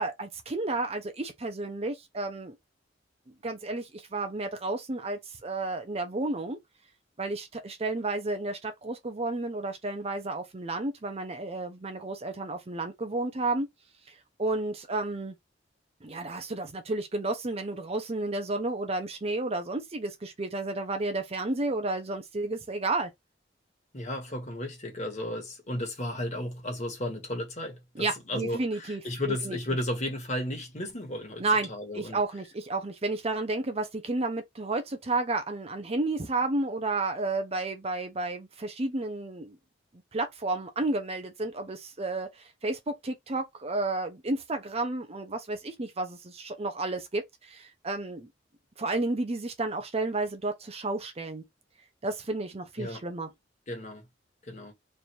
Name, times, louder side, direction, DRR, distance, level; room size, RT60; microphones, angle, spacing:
voice 1, 0.0-2.5 3.4-6.6 7.2-13.7 14.1-15.3 16.0-23.1 27.9-29.0 29.3-29.6 31.4-39.6 40.1-48.3 48.8-51.4 52.0-53.3, right 2 dB, 35° right, 0.7 m, -32 dB
voice 2, 23.9-32.2 52.8-53.0 53.7-54.0 54.4-54.7, left 1 dB, 40° left, 1.6 m, -34 dB
3.3 x 2.6 x 4.4 m
head